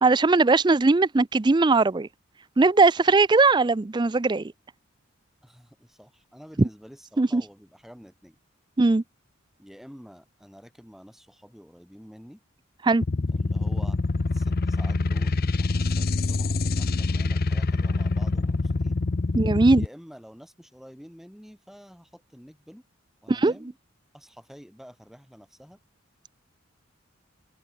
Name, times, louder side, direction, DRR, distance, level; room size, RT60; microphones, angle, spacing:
voice 1, 0.0-2.1 2.6-4.5 6.6-6.7 7.2-7.4 8.8-9.0 12.8-13.0 19.3-19.8 23.3-23.5, right 3 dB, 20° right, 0.4 m, -19 dB
voice 2, 5.4-8.4 9.6-12.4 13.3-14.0 14.3-19.0 19.8-22.8 23.2-23.8 24.1-25.8, equal, ahead, 6.3 m, -48 dB
sound 1, 13.0-19.9, left 3 dB, 45° left, 0.6 m, -25 dB
head